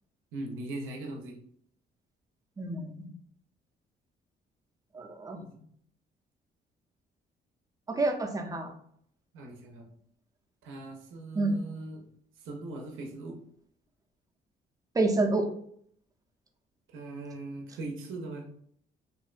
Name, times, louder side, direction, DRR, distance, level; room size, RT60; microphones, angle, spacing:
voice 1, 0.3-1.4 5.4-5.7 9.3-9.9 10.6-12.1 12.4-13.4 16.9-18.5, right 2 dB, 85° right, 2 dB, 0.5 m, -40 dB
voice 2, 2.6-3.1 4.9-5.4 7.9-8.7 11.4-11.6 14.9-15.5, right 2 dB, 20° right, 3 dB, 0.4 m, -28 dB
2.5 x 2.1 x 2.4 m, 0.64 s
cardioid pair, 90°, 20 cm